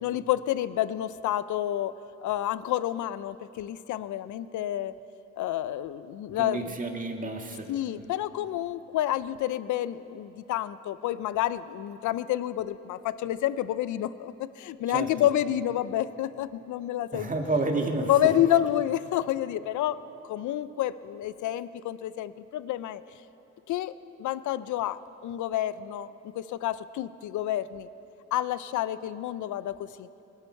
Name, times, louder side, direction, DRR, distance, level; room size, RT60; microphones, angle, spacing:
voice 1, 0.0-1.9 2.2-4.9 5.4-6.7 7.7-17.3 18.0-23.0 23.7-23.9 24.2-27.9 28.3-30.1, left 12 dB, 75° left, 16 dB, 0.5 m, -29 dB
voice 2, 6.4-7.7 14.9-15.1 17.1-18.3, right 2 dB, 25° right, 3 dB, 2.0 m, -30 dB
24.5 x 12.5 x 4.6 m, 2.9 s
cardioid pair, 90°, 30 cm